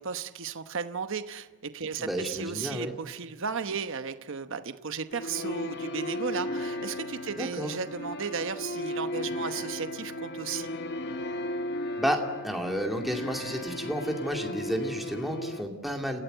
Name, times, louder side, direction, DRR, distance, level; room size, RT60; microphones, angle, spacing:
voice 1, 0.0-10.7, right 5 dB, 60° right, 10 dB, 1.0 m, -35 dB
voice 2, 2.0-2.9 7.4-7.7 12.0-16.2, equal, ahead, 2 dB, 2.3 m, -31 dB
sound 1, 5.1-15.6, left 1 dB, 50° left, 1.2 m, -35 dB
29.5 x 17.0 x 8.0 m, 1.3 s
head